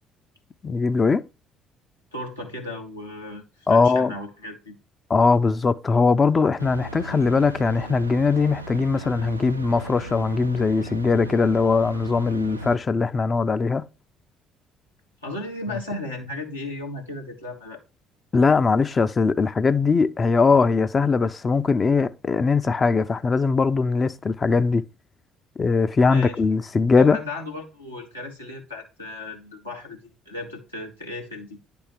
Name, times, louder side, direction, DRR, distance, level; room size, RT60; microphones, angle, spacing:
voice 1, 0.6-1.2 3.7-4.1 5.1-13.8 18.3-24.8 25.6-27.2, left 4 dB, 30° left, 0.5 m, -20 dB
voice 2, 2.1-4.8 15.2-17.8 26.1-26.4 27.0-31.6, left 2 dB, 90° left, 1.5 m, -35 dB
sound 1, 6.6-12.8, right 2 dB, 90° right, 0.3 m, -37 dB
10.0 x 3.6 x 4.5 m
figure-of-eight pair, 50°, 0 cm